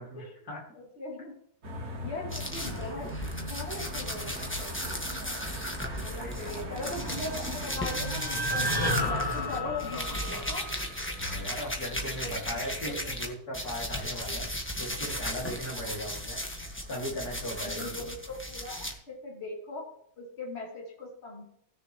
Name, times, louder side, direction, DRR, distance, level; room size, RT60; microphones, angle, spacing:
voice 1, 0.0-0.6 2.5-2.8 5.9-6.8 9.0-10.5 11.2-16.5 16.9-18.1, equal, 75° left, -1 dB, 3.0 m, -39 dB
voice 2, 0.8-1.4 2.0-3.1 3.4-5.4 6.0-10.6 11.3-11.6 12.2-13.1 14.2-14.4 15.7-15.9 17.7-19.8 20.2-21.4, left 2 dB, 45° left, -2 dB, 2.9 m, -40 dB
sound 1, 1.6-8.2, equal, 80° right, 2.5 m, -39 dB
sound 2, 2.3-13.3 13.5-18.9, equal, 10° left, 1.3 m, -36 dB
sound 3, 7.2-11.3, equal, 15° right, 1.2 m, -33 dB
17.5 x 6.7 x 3.0 m, 0.70 s
omnidirectional pair, 1.6 m